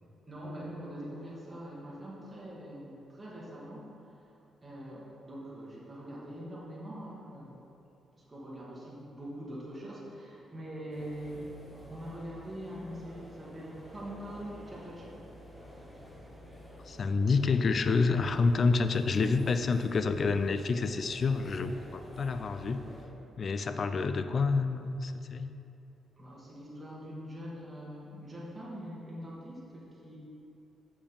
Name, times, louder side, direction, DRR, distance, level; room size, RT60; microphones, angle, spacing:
voice 1, 0.0-3.9 4.6-7.6 8.2-11.6 11.9-15.2 26.2-30.2, equal, 20° right, -6 dB, 1.7 m, -43 dB
sound 1, 10.9-23.1, equal, 10° left, 1.3 m, -50 dB
voice 2, 16.9-22.8 23.4-25.5, left 4 dB, 45° left, 10 dB, 0.4 m, -28 dB
6.8 x 5.3 x 5.1 m, 2.8 s
cardioid pair, 90°, 0 cm